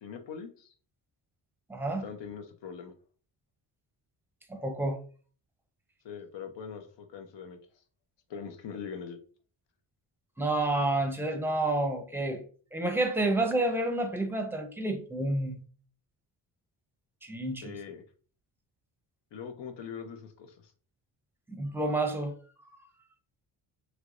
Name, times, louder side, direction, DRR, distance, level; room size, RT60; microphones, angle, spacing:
voice 1, 0.0-0.7 2.0-2.9 6.0-7.6 8.3-9.2 17.6-18.0 19.3-20.7, left 6 dB, 70° left, 0.7 m, -42 dB
voice 2, 1.7-2.1 4.5-5.0 10.4-12.4 12.7-15.6 17.2-17.7 21.5-22.3, right 2 dB, 5° right, 0.6 m, -29 dB
3.3 x 2.9 x 2.5 m
cardioid pair, 95°, 45 cm